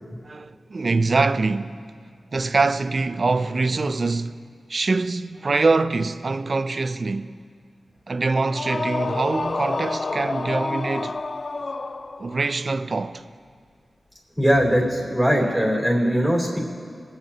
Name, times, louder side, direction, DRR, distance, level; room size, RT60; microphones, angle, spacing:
voice 1, 0.2-1.8 2.3-4.4 4.7-7.3 8.1-11.2 12.2-13.2, right 3 dB, 50° right, 0.4 m, -24 dB
sound 1, 8.5-12.5, left 3 dB, 40° left, 0.4 m, -28 dB
voice 2, 14.4-16.6, equal, 10° right, 3.0 m, -20 dB
26.0 x 8.7 x 2.8 m
wide cardioid pair, 95°, 0 cm